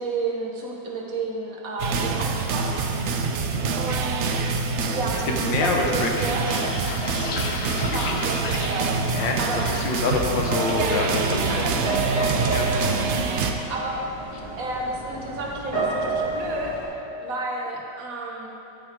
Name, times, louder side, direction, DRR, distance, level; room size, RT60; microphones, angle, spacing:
voice 1, 0.0-3.3 3.7-4.3 4.9-6.4 7.9-8.9 9.4-9.7 10.7-13.2 13.7-14.0 14.6-16.8 17.2-18.5, right 2 dB, 55° right, -1 dB, 1.4 m, -32 dB
sound 1, 1.8-13.5, right 5 dB, 85° right, 0.6 m, -26 dB
voice 2, 5.1-6.4 9.1-11.6 12.5-12.7, left 3 dB, 90° left, 1 dB, 1.7 m, -26 dB
sound 2, 6.5-9.9 10.2-10.7 11.1-11.6 11.8-13.1 13.4-13.7 14.0-14.5, left 5 dB, 75° left, 1.3 m, -34 dB
sound 3, 10.5-16.8, right 2 dB, 30° right, 2.4 m, -30 dB
14.0 x 6.0 x 3.7 m, 2.8 s
omnidirectional pair, 1.9 m